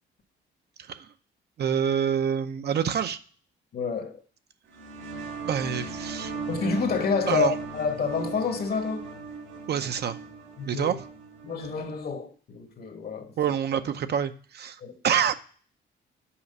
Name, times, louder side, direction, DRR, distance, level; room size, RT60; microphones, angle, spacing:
voice 1, 1.6-3.2 5.4-6.4 7.3-7.6 9.7-10.2 10.7-11.0 13.4-15.3, right 8 dB, 55° right, 0.6 m, -27 dB
voice 2, 3.7-4.2 6.5-9.2 10.6-10.9 11.4-13.4 14.8-15.0, left 5 dB, 50° left, 1.1 m, -29 dB
sound 1, 4.7-12.1, right 4 dB, 85° right, 1.5 m, -38 dB
5.7 x 4.9 x 5.3 m
cardioid pair, 90°, 20 cm